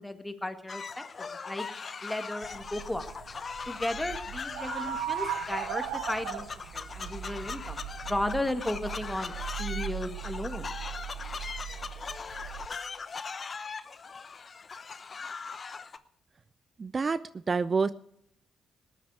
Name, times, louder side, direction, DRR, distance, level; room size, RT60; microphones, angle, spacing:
voice 1, 0.0-1.7 2.0-3.1 3.7-6.5 6.7-9.3 9.6-10.7, left 1 dB, 10° left, 8 dB, 1.8 m, -35 dB
sound 1, 0.7-16.0, left 5 dB, 45° left, 0.8 m, -40 dB
sound 2, 2.4-12.7, right 12 dB, 75° right, 0.7 m, -38 dB
voice 2, 16.8-17.2 17.5-17.9, right 4 dB, 40° right, 15 dB, 0.4 m, -27 dB
20.0 x 9.0 x 4.8 m, 0.74 s
hypercardioid pair, 45°, 0 cm